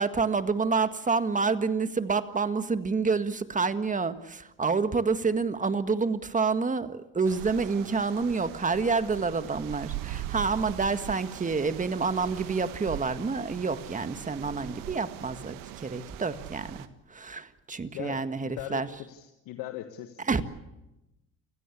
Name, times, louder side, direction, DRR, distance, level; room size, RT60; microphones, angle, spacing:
voice 1, 0.0-18.9 20.3-20.4, right 4 dB, 25° right, 11 dB, 1.8 m, -28 dB
sound 1, 7.2-16.9, right 13 dB, 75° right, 1.6 m, -41 dB
voice 2, 17.9-20.4, left 13 dB, 75° left, 8 dB, 1.6 m, -40 dB
29.0 x 16.5 x 8.5 m, 0.96 s
supercardioid pair, 80°, 34 cm